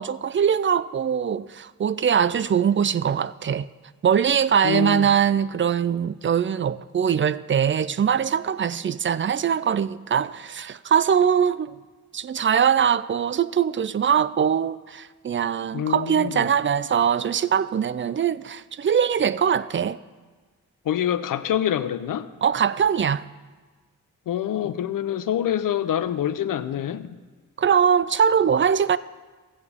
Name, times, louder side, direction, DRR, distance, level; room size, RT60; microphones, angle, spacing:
voice 1, 0.0-3.7 4.0-11.8 12.1-20.0 22.4-23.2 27.6-29.0, right 8 dB, 40° right, 0.4 m, -22 dB
voice 2, 4.6-5.1 15.7-16.5 20.9-22.3 24.3-27.2, left 10 dB, 80° left, 0.5 m, -26 dB
14.0 x 8.3 x 3.6 m
cardioid pair, 45°, 32 cm